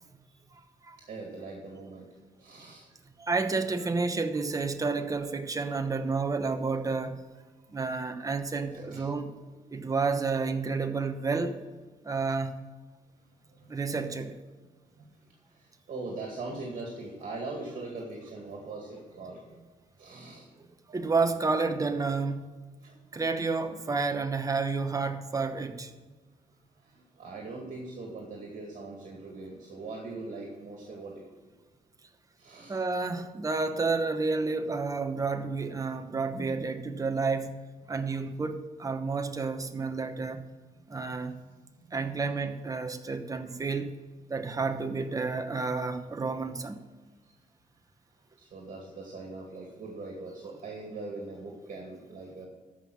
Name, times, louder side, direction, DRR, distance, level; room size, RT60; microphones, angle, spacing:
voice 1, 0.5-1.0 3.2-7.2 7.7-9.3 9.7-11.6 12.0-12.5 13.7-14.3 20.9-22.5 23.1-25.9 32.7-37.5 37.9-40.4 40.9-41.4 41.9-43.9 44.3-46.8, right 4 dB, 25° right, 7 dB, 0.9 m, -30 dB
voice 2, 1.1-2.9 7.6-7.9 8.7-10.4 13.3-13.8 14.9-19.6 20.0-21.0 22.8-23.2 26.0-26.1 26.5-31.3 32.4-32.8 38.1-38.4 40.7-42.4 47.2-47.4 48.3-52.5, right 3 dB, 60° right, -1 dB, 2.3 m, -42 dB
13.5 x 5.5 x 6.3 m, 1.4 s
cardioid pair, 130°, 15 cm